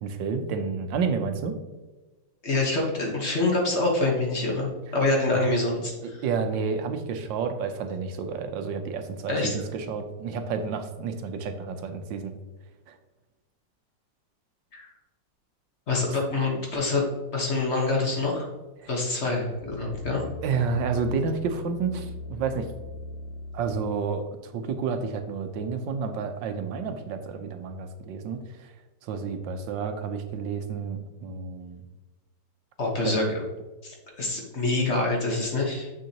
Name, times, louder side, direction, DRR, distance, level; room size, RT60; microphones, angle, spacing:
voice 1, 0.0-1.6 5.3-5.5 6.2-12.3 12.9-13.0 18.8-18.9 20.4-22.7 23.5-28.7 29.0-31.8 33.0-33.3, right 5 dB, 80° right, 7 dB, 1.4 m, -30 dB
voice 2, 2.4-5.9 9.3-9.6 14.7-14.9 15.9-17.1 17.3-18.5 18.9-20.3 32.8-33.4 33.8-35.9, left 2 dB, 40° left, -1 dB, 1.3 m, -26 dB
sound 1, 19.6-23.9 24.4-24.5, left 3 dB, 70° left, 0.9 m, -39 dB
7.2 x 6.4 x 2.9 m, 1.2 s
omnidirectional pair, 2.0 m